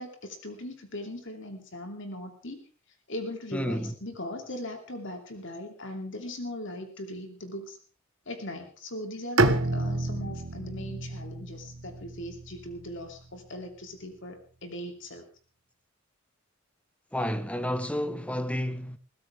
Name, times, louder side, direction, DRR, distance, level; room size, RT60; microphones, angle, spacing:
voice 1, 0.0-2.6 3.1-7.8 8.3-15.3, left 1 dB, 60° left, 2.9 m, -39 dB
voice 2, 3.5-3.9 17.1-19.0, equal, 5° left, 1.2 m, -30 dB
Bowed string instrument, 9.4-13.3, right 2 dB, 60° right, 1.3 m, -29 dB
21.5 x 16.0 x 3.6 m
head